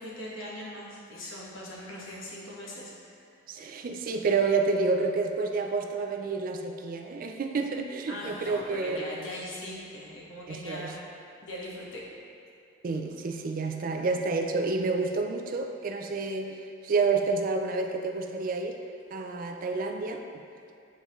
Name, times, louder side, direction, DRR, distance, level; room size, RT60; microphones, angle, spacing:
voice 1, 0.0-2.9 3.3-3.4 8.1-11.0 11.4-12.0, left 1 dB, 75° left, -4 dB, 1.2 m, -40 dB
voice 2, 3.5-9.1 10.5-10.9 12.8-16.6 16.8-18.8 19.1-20.2, right 4 dB, 45° right, 5 dB, 0.3 m, -29 dB
8.1 x 3.9 x 3.0 m, 2.5 s
head